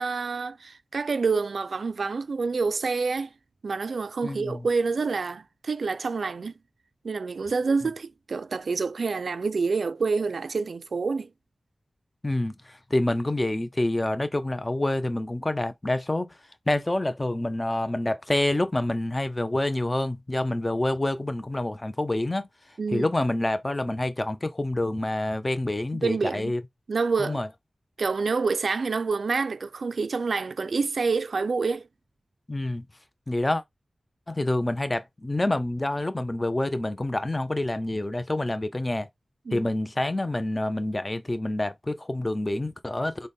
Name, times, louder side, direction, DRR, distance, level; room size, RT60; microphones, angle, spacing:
voice 1, 0.0-3.3 3.6-6.5 7.0-11.3 22.8-23.1 26.0-26.5 26.9-27.4 28.0-31.9 39.5-39.7, right 4 dB, 80° right, 0.3 m, -27 dB
voice 2, 4.2-4.7 12.2-16.3 16.7-22.5 22.9-26.6 27.2-27.5 32.5-32.8 33.3-33.6 34.3-39.1 39.5-43.3, left 1 dB, 25° left, 0.5 m, -27 dB
4.0 x 2.1 x 3.4 m
wide cardioid pair, 85°, 0 cm